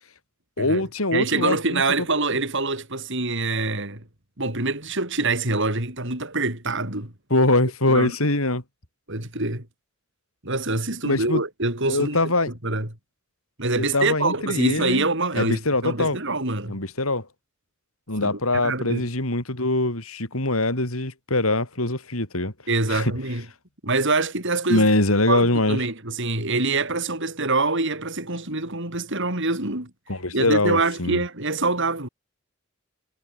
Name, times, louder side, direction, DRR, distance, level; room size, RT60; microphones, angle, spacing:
voice 1, 0.6-1.8 7.3-8.6 11.0-11.4 11.9-12.5 13.8-15.1 15.4-16.2 16.7-17.3 18.1-22.5 22.9-23.1 24.7-25.8 30.1-31.2, left 2 dB, 85° left, 6.3 m, -23 dB
voice 2, 1.1-4.0 4.4-7.1 7.9-8.2 9.1-9.7 10.4-12.3 12.6-12.9 13.6-16.8 18.2-18.3 18.6-19.1 22.7-23.5 23.8-24.9 25.3-29.9 30.3-32.1, right 3 dB, 60° right, 7.1 m, -25 dB
head